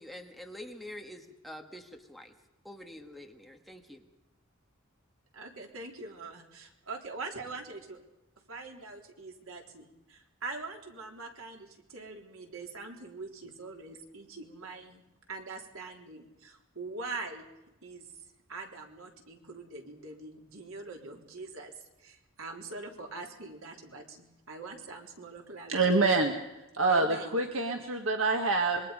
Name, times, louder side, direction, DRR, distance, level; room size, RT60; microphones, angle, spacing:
voice 1, 0.0-2.3 2.6-4.1, left 1 dB, ahead, 3 dB, 1.7 m, -46 dB
voice 2, 5.3-8.0 8.5-15.0 15.3-17.4 17.8-18.0 18.5-21.7 22.0-26.1 26.9-27.4, right 3 dB, 90° right, 2 dB, 3.9 m, -43 dB
voice 3, 25.7-26.3 26.8-28.9, right 3 dB, 70° right, 4 dB, 1.8 m, -26 dB
26.0 x 23.0 x 5.3 m, 0.97 s
head